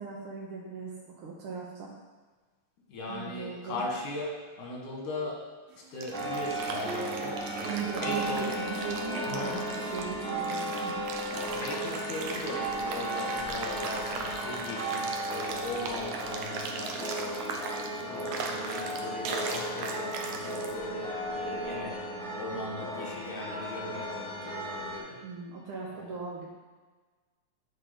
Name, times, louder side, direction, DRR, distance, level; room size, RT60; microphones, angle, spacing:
voice 1, 0.0-1.9 3.1-3.8 7.6-11.0 25.2-26.5, right 6 dB, 60° right, -4 dB, 1.6 m, -38 dB
voice 2, 2.9-5.4 5.7-8.5 9.3-9.7 11.5-22.0 22.3-25.2 25.9-26.1, left 1 dB, 90° left, -1 dB, 3.1 m, -38 dB
sound 1, 5.7-20.7, right 5 dB, 80° right, 2.1 m, -39 dB
sound 2, 6.1-25.0, right 1 dB, ahead, 0.8 m, -35 dB
9.9 x 4.3 x 5.2 m, 1.3 s
omnidirectional pair, 3.4 m